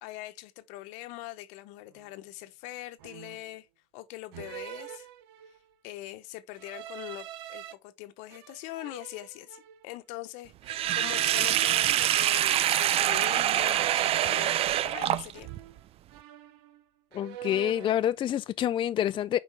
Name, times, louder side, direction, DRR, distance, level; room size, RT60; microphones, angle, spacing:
voice 1, 0.0-3.7 3.9-5.1 5.8-15.5, left 16 dB, 80° left, 0.9 m, -42 dB
sound 1, 1.9-2.1 3.0-3.5 4.3-5.7 6.5-7.7 8.3-9.8 10.6-13.0 13.6-16.8 17.1-18.0, right 12 dB, 90° right, 0.8 m, -45 dB
Sink (filling or washing), 10.7-15.6, right 12 dB, 50° right, 0.5 m, -25 dB
voice 2, 17.1-19.4, left 11 dB, 45° left, 0.4 m, -27 dB
7.3 x 5.0 x 3.4 m
supercardioid pair, 90°, 12 cm